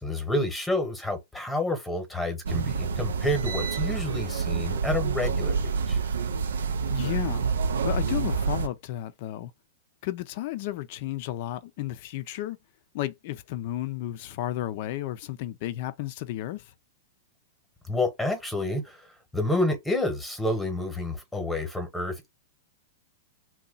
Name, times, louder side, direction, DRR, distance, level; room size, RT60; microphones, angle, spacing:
voice 1, 0.0-6.0 17.9-19.1 19.3-22.3, left 1 dB, 5° left, 1.0 m, -29 dB
sound 1, 2.4-8.7, right 5 dB, 85° right, 0.4 m, -27 dB
voice 2, 6.9-7.5 7.8-9.5 10.0-12.6 12.9-16.7, left 14 dB, 55° left, 0.4 m, -33 dB
2.8 x 2.2 x 3.9 m
hypercardioid pair, 125°, 0 cm